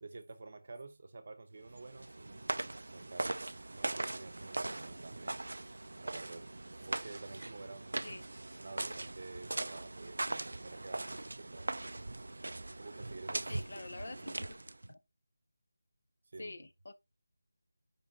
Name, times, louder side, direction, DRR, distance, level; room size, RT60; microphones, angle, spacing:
voice 1, 0.0-2.6 2.8-3.4 3.7-5.4 6.0-6.5 6.8-8.3 8.6-11.7 12.8-13.8 14.1-14.5 16.3-16.6, right 3 dB, 35° right, 0.8 m, -50 dB
sound 1, 1.6-14.9, right 2 dB, 80° right, 0.3 m, -40 dB
voice 2, 13.5-14.6 14.9-15.0 16.4-16.9, left 2 dB, 50° left, 0.7 m, -46 dB
9.8 x 5.2 x 2.8 m
figure-of-eight pair, 180°, 0 cm